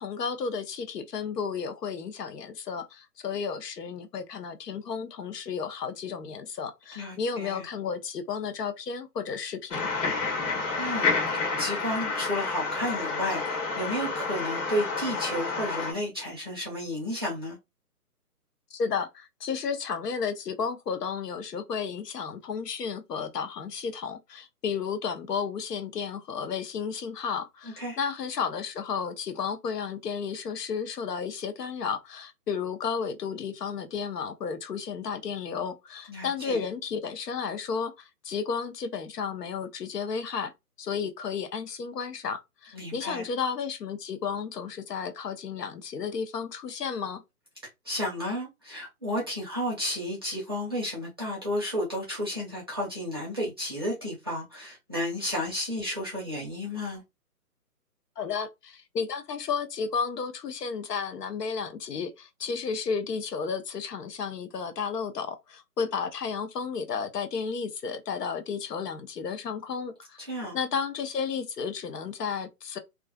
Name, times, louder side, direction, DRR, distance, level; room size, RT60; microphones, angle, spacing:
voice 1, 0.0-9.9 18.7-40.5 40.8-47.2 58.2-70.2 70.5-72.8, left 6 dB, 80° left, 0.7 m, -33 dB
voice 2, 6.9-7.6 10.8-11.1 11.6-17.6 27.8-28.0 36.1-36.7 42.7-43.2 47.8-57.0 70.2-70.6, left 1 dB, 15° right, 0.5 m, -32 dB
sound 1, 9.7-15.9, left 4 dB, 50° left, 1.2 m, -29 dB
2.4 x 2.3 x 2.2 m
hypercardioid pair, 155°, 47 cm